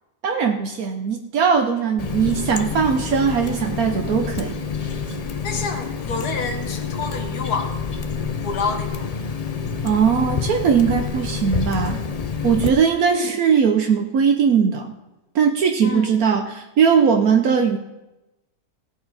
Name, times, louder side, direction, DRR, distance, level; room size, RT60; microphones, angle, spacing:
voice 1, 0.2-4.6 9.8-12.0 12.4-14.9 15.3-17.8, right 6 dB, 70° right, 4 dB, 1.2 m, -19 dB
Water tap faucet, 2.0-12.7, left 5 dB, 60° left, 0.4 m, -28 dB
voice 2, 5.4-7.7 8.4-9.1 15.8-16.3, left 4 dB, 85° left, 5 dB, 1.8 m, -28 dB
18.0 x 8.7 x 4.1 m, 1.0 s
omnidirectional pair, 1.6 m